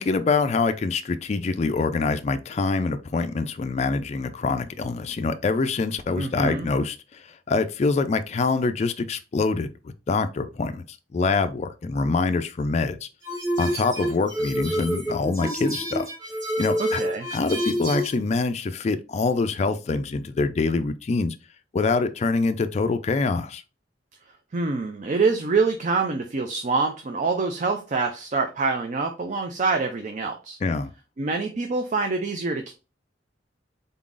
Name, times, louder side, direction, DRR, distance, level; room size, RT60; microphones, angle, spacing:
voice 1, 0.0-10.8 11.1-13.1 13.6-16.1 16.6-17.0 17.3-21.3 21.7-23.6 30.6-30.9, left 3 dB, 35° left, 0.3 m, -25 dB
voice 2, 6.2-6.7 16.8-17.3 24.5-30.6 31.2-32.7, right 4 dB, 40° right, 0.4 m, -25 dB
sound 1, 13.2-18.2, equal, 20° right, 1.3 m, -28 dB
4.0 x 3.7 x 2.4 m
head